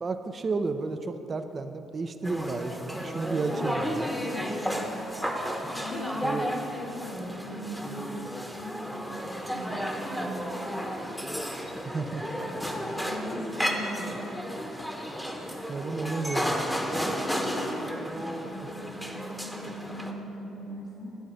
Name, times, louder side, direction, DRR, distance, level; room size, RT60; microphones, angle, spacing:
voice 1, 0.0-4.1 6.2-6.5 11.9-12.2 15.7-16.6, right 3 dB, 40° right, 8 dB, 0.6 m, -32 dB
sound 1, 2.2-20.1, equal, ahead, 1.0 m, -33 dB
voice 2, 5.7-10.7 12.4-14.3 17.9-21.2, equal, 75° left, -9 dB, 1.6 m, -40 dB
10.5 x 4.1 x 7.5 m, 3.0 s
supercardioid pair, 70°, 0 cm